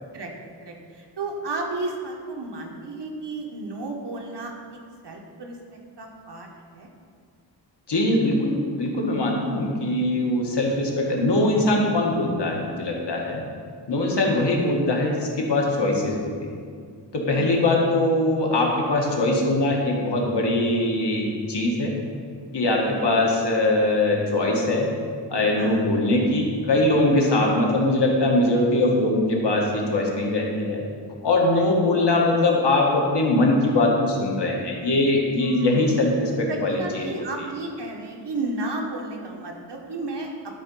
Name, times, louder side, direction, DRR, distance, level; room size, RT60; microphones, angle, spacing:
voice 1, 0.6-6.9 14.1-14.5 17.3-17.7 22.7-23.2 25.6-25.9 27.2-27.3 31.5-31.7 35.4-36.0 36.5-40.3, right 2 dB, 70° right, 1 dB, 1.3 m, -33 dB
voice 2, 7.9-13.4 13.9-16.5 17.1-21.9 22.5-24.9 25.3-30.8 31.2-37.2, left 2 dB, 70° left, -1 dB, 1.6 m, -22 dB
11.5 x 4.4 x 5.5 m, 2.1 s
wide cardioid pair, 95°, 43 cm